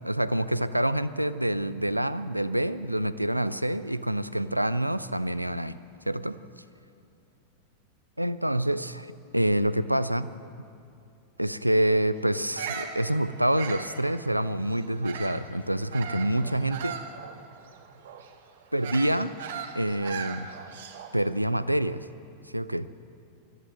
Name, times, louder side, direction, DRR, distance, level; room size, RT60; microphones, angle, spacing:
voice 1, 0.0-5.8 6.1-6.4 8.2-10.3 11.4-17.0 18.7-19.3 19.7-20.5 21.1-22.1 22.5-22.9, right 1 dB, 90° right, 14 dB, 0.6 m, -27 dB
Bird vocalization bird call bird song, 12.4-15.5 15.9-21.2, right 7 dB, 60° right, 1.7 m, -39 dB
20.5 x 14.0 x 9.1 m, 2.5 s
figure-of-eight pair, 90°, 0 cm